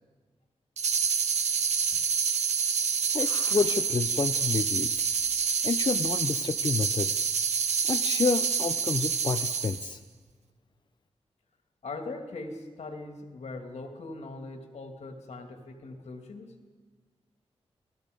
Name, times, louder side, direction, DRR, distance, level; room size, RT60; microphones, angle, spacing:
sound 1, 0.8-9.9, right 6 dB, 90° right, 1.0 m, -27 dB
voice 1, 3.1-4.9 5.6-7.3 7.9-10.0, left 5 dB, 45° left, 8 dB, 0.6 m, -29 dB
voice 2, 11.8-16.5, left 3 dB, 80° left, 4 dB, 2.6 m, -40 dB
28.0 x 18.5 x 5.3 m, 1.4 s
wide cardioid pair, 95°, 11 cm